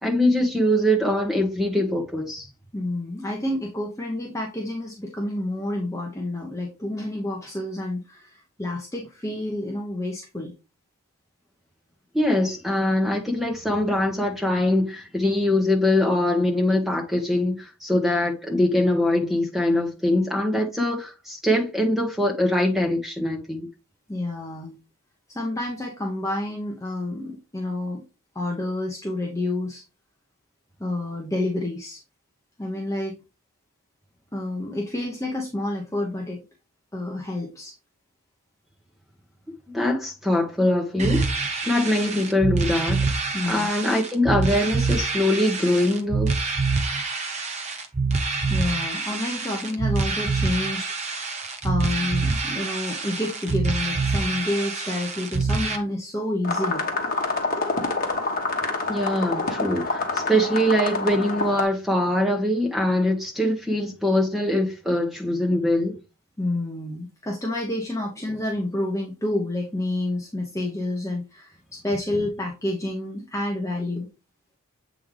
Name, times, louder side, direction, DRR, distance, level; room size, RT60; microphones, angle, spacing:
voice 1, 0.0-2.5 12.1-23.7 39.7-41.3 41.6-43.0 43.5-46.3 58.9-65.9, left 1 dB, ahead, 1.3 m, -23 dB
voice 2, 2.7-10.5 24.1-24.8 25.3-28.0 28.3-29.8 30.8-32.0 32.6-33.2 34.3-36.4 36.9-37.7 43.3-43.7 48.5-51.4 51.6-56.9 66.4-74.1, left 1 dB, 15° left, 0.9 m, -29 dB
sound 1, 41.0-55.8, right 4 dB, 30° right, 0.9 m, -26 dB
sound 2, 56.4-61.6, left 3 dB, 40° left, 1.3 m, -27 dB
7.6 x 3.8 x 3.3 m
head